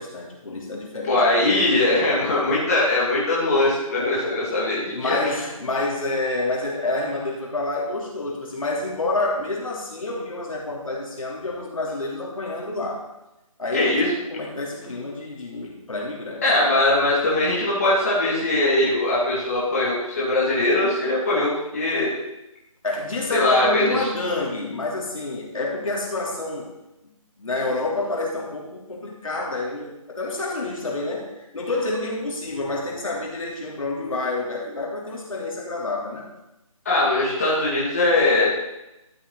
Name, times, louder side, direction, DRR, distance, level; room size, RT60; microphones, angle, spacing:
voice 1, 0.0-1.2 4.9-13.0 13.6-16.8 22.8-26.7 27.0-36.3, left 2 dB, 65° left, -3 dB, 3.5 m, -28 dB
voice 2, 1.0-5.2 13.7-14.1 16.4-22.2 23.3-24.0 36.8-38.5, left 2 dB, 25° left, -7 dB, 2.4 m, -21 dB
12.5 x 7.5 x 4.0 m, 0.93 s
figure-of-eight pair, 170°, 18 cm